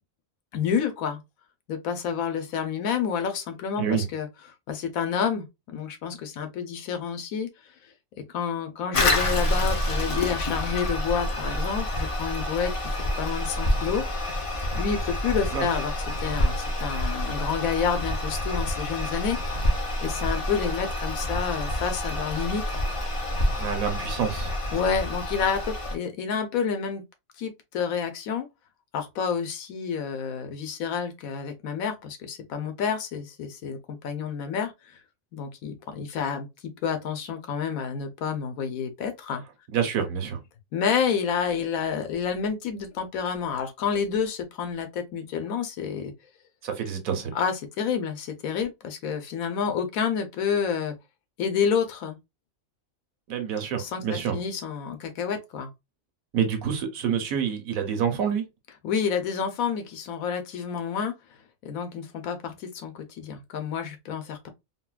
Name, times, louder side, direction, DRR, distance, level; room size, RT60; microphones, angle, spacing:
voice 1, 0.5-1.2 1.7-4.3 4.7-7.5 8.2-14.0 14.7-15.9 16.2-22.8 24.7-27.0 27.4-28.5 28.9-34.7 35.3-39.4 40.7-46.1 47.3-50.9 51.4-52.2 53.8-55.7 58.8-61.1 61.6-64.5, left 7 dB, 90° left, 1.2 m, -29 dB
Toilet flush, 8.9-26.0, left 1 dB, 40° left, 0.4 m, -28 dB
voice 2, 23.6-24.5 39.7-40.4 46.6-47.3 53.3-54.4 56.3-58.4, right 7 dB, 85° right, 1.3 m, -27 dB
4.0 x 2.2 x 2.2 m
omnidirectional pair, 1.4 m